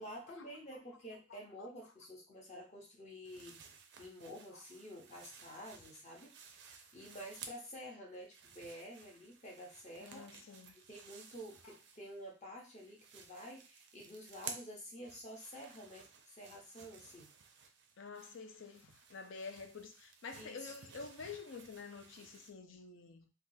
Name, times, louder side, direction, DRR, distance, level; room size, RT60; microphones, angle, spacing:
voice 1, 0.0-3.6 4.0-6.3 6.6-10.3 10.9-17.3 17.6-17.7 20.3-20.7, equal, 30° left, 0.8 m, -50 dB
voice 2, 1.3-1.7 4.5-4.6 10.0-10.7 11.6-11.7 18.0-23.3, left 4 dB, 60° left, 0.5 m, -49 dB
sound 1, 3.2-7.8 8.1-12.3 12.6-22.5, right 6 dB, 50° right, 0.4 m, -55 dB
3.5 x 2.3 x 2.6 m
head